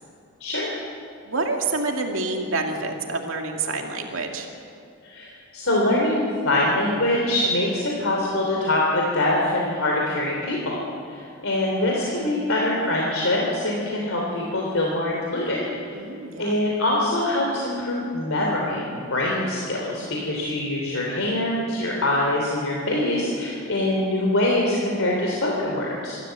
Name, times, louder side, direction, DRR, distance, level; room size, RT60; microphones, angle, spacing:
voice 1, 0.4-0.7 5.0-10.8 11.1-15.6 16.4-26.2, left 1 dB, 70° left, -2 dB, 3.3 m, -24 dB
voice 2, 1.2-4.5 15.9-16.5, right 3 dB, 70° right, 2 dB, 2.4 m, -27 dB
25.5 x 13.5 x 7.7 m, 2.4 s
head